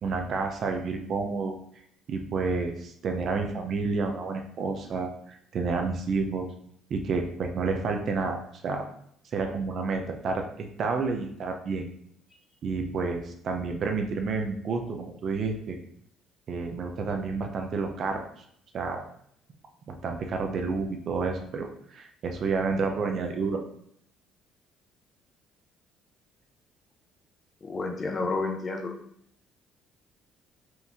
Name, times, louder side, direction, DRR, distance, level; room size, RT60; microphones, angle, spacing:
voice 1, 0.0-1.6 2.1-6.5 6.9-8.4 8.6-8.9 9.3-11.9 12.6-15.8 16.5-18.2 18.7-19.0 19.9-23.6, right 4 dB, 55° right, 4 dB, 0.7 m, -30 dB
voice 2, 27.6-28.9, left 3 dB, 35° left, 2 dB, 0.8 m, -30 dB
4.5 x 2.7 x 3.5 m, 0.67 s
cardioid pair, 90°, 0 cm